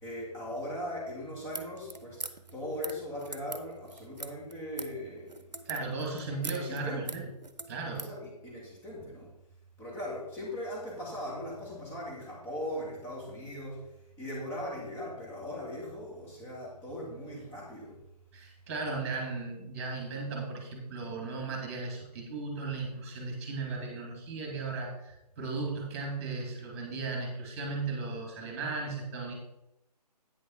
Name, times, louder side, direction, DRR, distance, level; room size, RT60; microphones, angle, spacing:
voice 1, 0.0-2.2 2.5-5.8 6.3-7.1 7.9-9.3 9.8-18.0, left 1 dB, 10° left, -5 dB, 2.5 m, -39 dB
sound 1, 1.5-8.2, right 3 dB, 80° right, 1.0 m, -42 dB
voice 2, 5.6-7.2 7.7-8.1 18.3-29.3, right 3 dB, 20° right, 1 dB, 2.3 m, -36 dB
9.2 x 6.5 x 4.2 m, 0.87 s
figure-of-eight pair, 145°, 21 cm